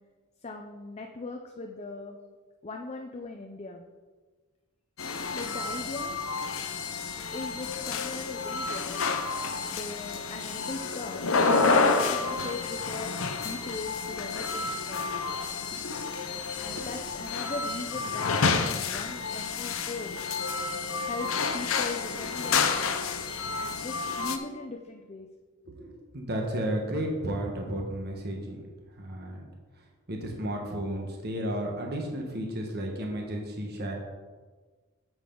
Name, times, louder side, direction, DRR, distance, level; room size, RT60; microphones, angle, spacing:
voice 1, 0.4-2.2 2.6-3.9 5.3-6.2 7.3-9.0 9.7-15.2 16.6-20.2 21.0-22.9 23.6-25.3, left 3 dB, 30° left, 3 dB, 0.6 m, -39 dB
sound 1, 5.0-24.4, left 4 dB, 65° left, 0.7 m, -29 dB
voice 2, 25.7-28.6 29.0-29.4 30.1-33.9, right 1 dB, 45° right, 1 dB, 1.3 m, -33 dB
9.3 x 8.0 x 3.8 m, 1.4 s
head